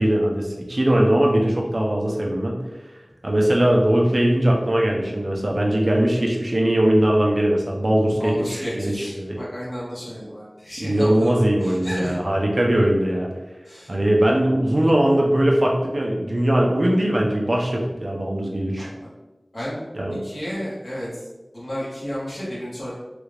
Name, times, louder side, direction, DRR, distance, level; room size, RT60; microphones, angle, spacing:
voice 1, 0.0-2.6 3.2-9.4 10.8-13.3 13.9-18.9 19.9-20.2, right 1 dB, 60° right, -1 dB, 0.6 m, -20 dB
voice 2, 8.2-11.3 11.6-12.2 13.6-13.9 16.9-17.0 18.8-19.1 19.5-19.8 20.2-21.3 21.5-22.9, equal, 70° left, -8 dB, 1.4 m, -32 dB
3.3 x 2.5 x 3.3 m, 1.1 s
wide cardioid pair, 50°, 0 cm